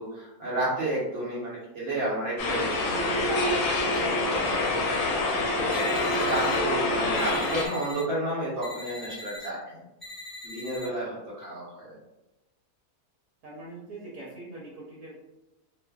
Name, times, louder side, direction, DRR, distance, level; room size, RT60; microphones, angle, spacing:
voice 1, 0.0-4.6 5.5-9.8 10.4-12.0, right 1 dB, 55° right, -8 dB, 1.0 m, -32 dB
sound 1, 2.4-7.7, left 2 dB, 70° left, 0.9 m, -26 dB
sound 2, 5.7-6.6 7.2-8.0 8.6-9.5 10.0-10.9, left 2 dB, ahead, 0.3 m, -42 dB
voice 2, 13.4-15.1, right 2 dB, 80° right, -5 dB, 1.2 m, -43 dB
2.6 x 2.4 x 2.2 m, 0.96 s
omnidirectional pair, 1.6 m